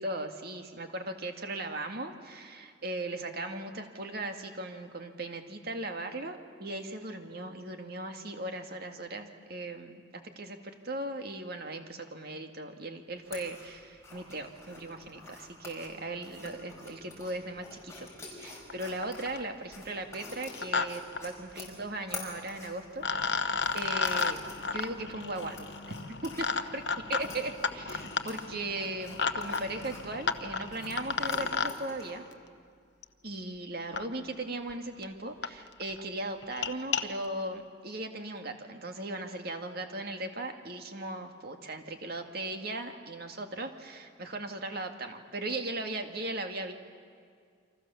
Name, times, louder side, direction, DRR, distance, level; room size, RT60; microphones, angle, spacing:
voice 1, 0.0-23.1 23.4-24.4 24.7-25.7 26.2-26.8 27.1-32.2 33.2-46.7, right 2 dB, 50° right, 5 dB, 2.1 m, -38 dB
sound 1, 13.2-32.2, left 3 dB, 15° left, 5.4 m, -48 dB
sound 2, 18.7-18.8 19.0-19.5 20.3-20.9 21.1-21.2 22.5-22.6 23.0-31.7 33.0-33.1 33.9-34.0 34.7-34.8 35.0-35.1 35.4-35.5 35.8-36.0 36.4-37.0, left 5 dB, 60° left, 1.0 m, -33 dB
28.5 x 25.0 x 7.1 m, 2.1 s
head